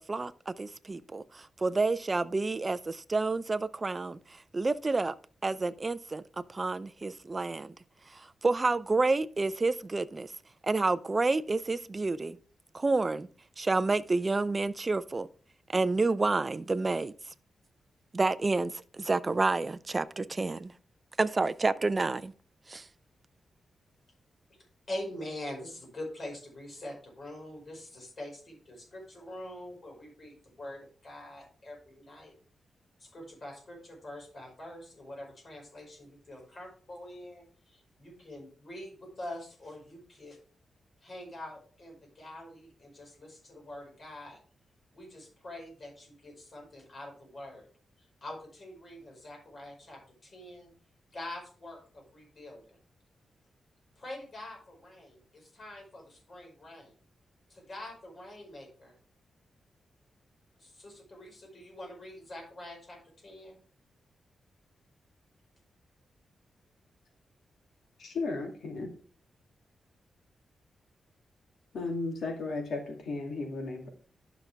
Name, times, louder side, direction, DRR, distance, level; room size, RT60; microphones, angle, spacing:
voice 1, 0.1-5.1 5.4-6.2 6.5-7.7 8.1-10.3 10.6-12.4 12.7-13.3 13.6-15.3 15.7-17.1 18.1-20.7 21.2-22.3 22.7-22.9, right 3 dB, 25° right, 0.4 m, -29 dB
voice 2, 24.9-32.3 33.0-37.4 37.7-40.4 41.0-44.4 44.9-47.7 48.2-50.7 51.1-52.8 54.0-56.9 57.5-58.9 60.6-63.6, left 1 dB, 40° left, 5.0 m, -45 dB
voice 3, 68.0-68.9 71.7-73.9, left 3 dB, 80° left, 2.5 m, -35 dB
11.0 x 5.9 x 3.4 m
wide cardioid pair, 120°, 0 cm